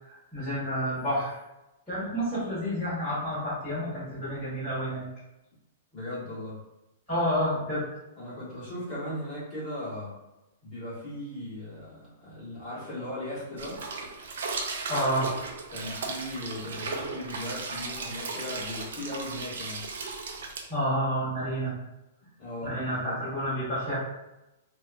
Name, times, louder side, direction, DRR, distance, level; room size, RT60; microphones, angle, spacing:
voice 1, 0.0-1.3 1.9-5.1 7.1-7.8 14.9-15.3 20.7-21.7 22.6-23.9, equal, 5° left, -16 dB, 1.2 m, -29 dB
voice 2, 5.9-6.6 8.2-10.1 10.6-13.8 15.7-19.8 22.4-23.2, left 1 dB, 20° left, -11 dB, 1.3 m, -38 dB
sound 1, 13.6-20.7, right 4 dB, 70° right, 0.4 m, -36 dB
2.8 x 2.2 x 2.4 m, 0.96 s
hypercardioid pair, 170°, 0 cm